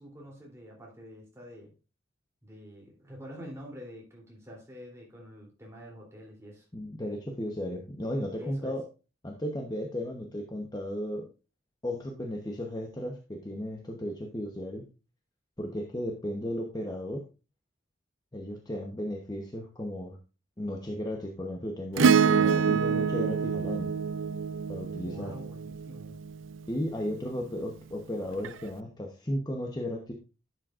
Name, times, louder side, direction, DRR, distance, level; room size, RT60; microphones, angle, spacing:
voice 1, 0.0-1.7 2.4-6.7 8.4-8.7 25.0-26.2, equal, 15° right, -2 dB, 3.1 m, -46 dB
voice 2, 6.7-8.8 9.2-11.3 11.8-14.8 15.6-17.2 18.3-20.2 20.6-23.9 24.7-25.3 26.7-30.1, left 1 dB, 20° left, 1 dB, 0.9 m, -35 dB
Acoustic guitar / Strum, 22.0-26.6 28.4-28.5, right 6 dB, 75° right, 0.4 m, -26 dB
11.0 x 7.5 x 2.5 m, 0.31 s
head